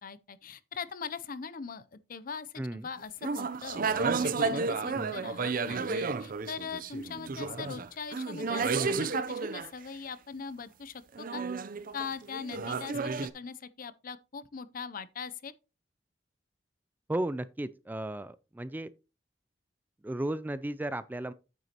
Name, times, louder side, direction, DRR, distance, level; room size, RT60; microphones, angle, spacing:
voice 1, 0.0-11.4 11.9-15.5, left 5 dB, 50° left, 0.6 m, -41 dB
voice 2, 2.6-2.9 4.9-5.1 17.1-18.9 20.0-21.3, right 1 dB, 10° right, 0.3 m, -34 dB
sound 1, 3.2-9.7 11.2-13.3, right 4 dB, 50° right, 0.6 m, -32 dB
9.2 x 8.0 x 2.9 m
head